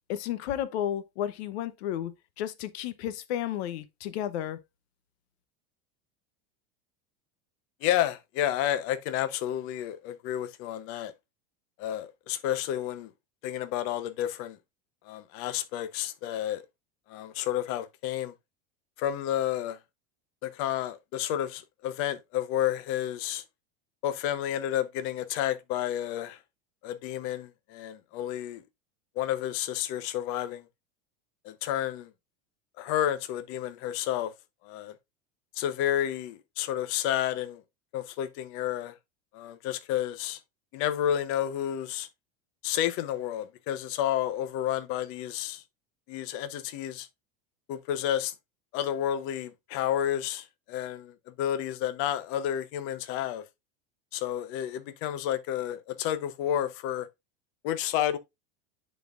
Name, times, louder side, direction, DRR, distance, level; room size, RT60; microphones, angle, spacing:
voice 1, 0.1-4.6, left 11 dB, 85° left, 0.9 m, -33 dB
voice 2, 7.8-11.1 11.8-13.1 13.4-14.6 15.1-16.6 17.1-18.3 19.0-19.8 20.4-23.4 24.0-26.4 26.8-28.6 29.2-30.6 31.4-32.1 32.8-34.3 34.6-34.9 35.6-37.6 37.9-38.9 39.3-40.4 40.7-42.1 42.6-45.6 46.1-47.1 47.7-48.3 48.7-53.4 54.1-57.1 57.6-58.2, left 11 dB, 45° left, 0.8 m, -30 dB
10.5 x 4.2 x 2.4 m
supercardioid pair, 165°, 31 cm